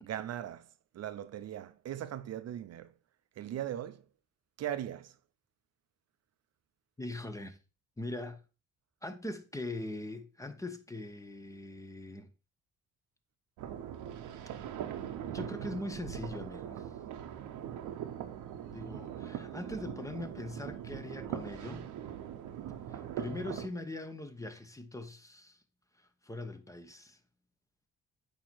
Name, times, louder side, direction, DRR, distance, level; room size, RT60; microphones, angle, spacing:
voice 1, 0.0-0.7 0.9-2.9 3.4-4.0 4.6-5.1, right 11 dB, 60° right, 0.5 m, -39 dB
voice 2, 7.0-7.6 8.0-8.4 9.0-12.3 15.3-16.9 18.7-21.9 22.9-25.6 25.9-27.2, left 2 dB, 10° left, 0.8 m, -41 dB
sound 1, 13.6-23.7, right 10 dB, 90° right, 0.8 m, -41 dB
8.6 x 2.9 x 4.4 m
cardioid pair, 90°, 30 cm